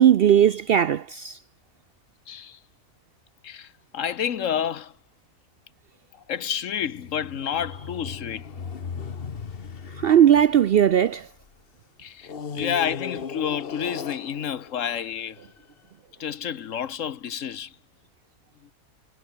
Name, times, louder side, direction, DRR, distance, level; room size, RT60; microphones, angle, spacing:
voice 1, 0.0-1.4 10.0-11.2, right 10 dB, 60° right, 0.6 m, -18 dB
voice 2, 3.9-4.9 6.3-8.4 12.0-12.3 12.5-15.4 16.2-17.7, left 8 dB, 70° left, 1.3 m, -29 dB
sound 1, 6.8-11.5 12.2-15.6, left 6 dB, 45° left, 1.4 m, -37 dB
omnidirectional pair, 1.4 m